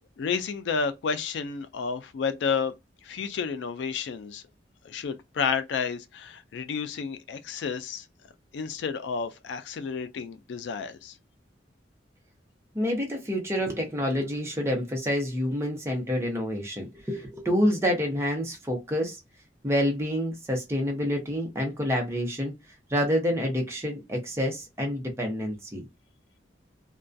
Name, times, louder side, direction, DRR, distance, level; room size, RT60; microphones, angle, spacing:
voice 1, 0.2-2.7 3.0-4.4 4.8-8.1 8.5-11.2, left 5 dB, 75° left, 0.3 m, -31 dB
voice 2, 12.7-19.2 19.6-22.5 22.9-25.9, equal, 15° right, 0.7 m, -28 dB
2.3 x 2.2 x 2.5 m
head